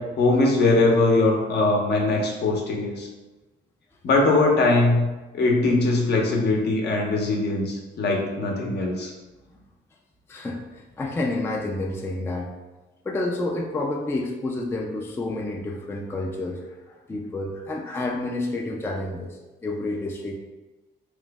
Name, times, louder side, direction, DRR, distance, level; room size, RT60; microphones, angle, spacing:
voice 1, 0.0-3.1 4.0-5.1 5.3-9.1, left 2 dB, 60° left, 0 dB, 0.7 m, -21 dB
voice 2, 10.3-12.5 13.1-20.4, left 2 dB, 10° left, 0 dB, 0.3 m, -29 dB
3.1 x 2.0 x 3.3 m, 1.1 s
cardioid pair, 90°, 20 cm